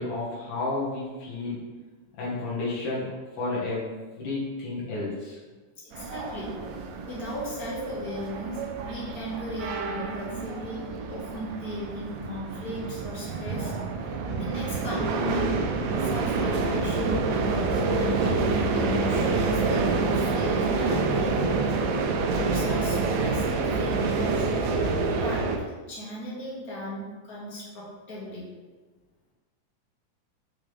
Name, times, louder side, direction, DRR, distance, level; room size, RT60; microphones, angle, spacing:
voice 1, 0.0-1.6 2.2-3.9 4.2-5.4, left 2 dB, 75° left, -7 dB, 3.0 m, -31 dB
voice 2, 5.8-6.5 7.0-8.6 8.8-10.8 11.1-13.7 14.4-15.5 16.0-21.7 22.5-24.3 25.1-25.5 25.9-28.4, equal, 30° left, -7 dB, 2.0 m, -36 dB
sound 1, 5.9-25.6, right 3 dB, 75° right, 1.7 m, -27 dB
6.7 x 5.6 x 3.3 m, 1.3 s
omnidirectional pair, 3.7 m